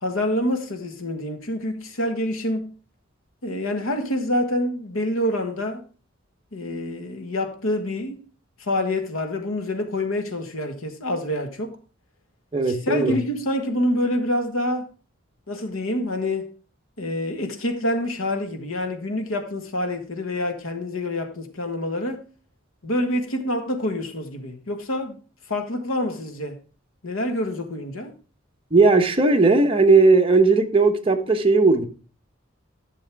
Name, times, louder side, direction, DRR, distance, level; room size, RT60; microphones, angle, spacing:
voice 1, 0.0-2.7 3.4-5.8 6.5-8.2 8.6-11.8 12.7-14.9 15.5-16.5 17.0-22.2 22.8-25.2 25.5-26.6 27.0-28.1, left 1 dB, 90° left, 1.6 m, -27 dB
voice 2, 12.5-13.2 28.7-31.9, right 3 dB, 25° right, 1.1 m, -17 dB
11.5 x 6.8 x 3.5 m
head